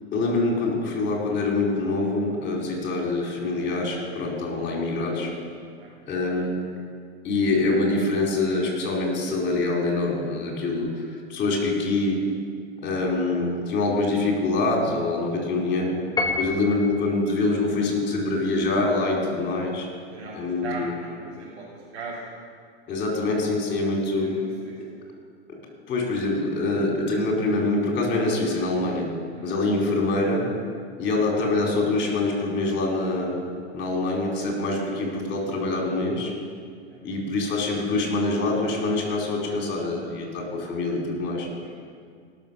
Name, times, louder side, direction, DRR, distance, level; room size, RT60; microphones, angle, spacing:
voice 1, 0.1-5.3 6.1-6.7 7.2-12.2 12.8-16.0 16.3-19.9 20.3-20.9 22.9-24.4 24.8-24.9 25.5-25.6 25.9-29.1 29.4-30.5 31.0-33.4 33.7-36.3 37.0-41.5, left 2 dB, 35° left, -1 dB, 4.4 m, -25 dB
Piano, 16.2-17.1, left 3 dB, 10° left, 1.5 m, -27 dB
voice 2, 20.1-22.2 24.1-24.7 29.3-29.5 36.8-37.0 41.5-41.7, right 3 dB, 85° right, -10 dB, 4.1 m, -39 dB
18.0 x 6.7 x 7.0 m, 2.1 s
hypercardioid pair, 110°, 33 cm